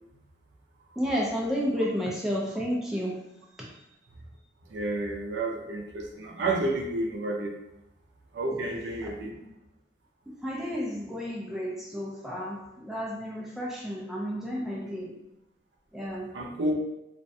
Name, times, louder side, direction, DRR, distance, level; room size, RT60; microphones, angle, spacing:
voice 1, 1.0-3.2 3.6-3.7 9.2-9.4 10.3-15.1 15.9-16.3, equal, ahead, -4 dB, 0.3 m, -31 dB
voice 2, 4.7-7.5 8.3-9.4 16.3-16.7, right 2 dB, 80° right, 1 dB, 0.4 m, -30 dB
2.5 x 2.1 x 2.6 m, 0.87 s
head